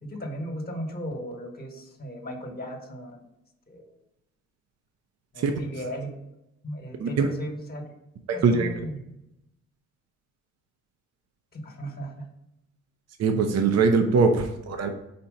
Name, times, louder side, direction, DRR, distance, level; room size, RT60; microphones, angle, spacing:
voice 1, 0.0-3.2 3.7-3.9 5.3-6.1 6.6-7.8 8.3-9.0 11.5-12.3 14.8-14.9, equal, 30° left, 3 dB, 1.3 m, -36 dB
voice 2, 13.2-14.9, right 4 dB, 55° right, 4 dB, 0.8 m, -22 dB
4.5 x 4.3 x 5.2 m, 0.88 s
cardioid pair, 90°, 30 cm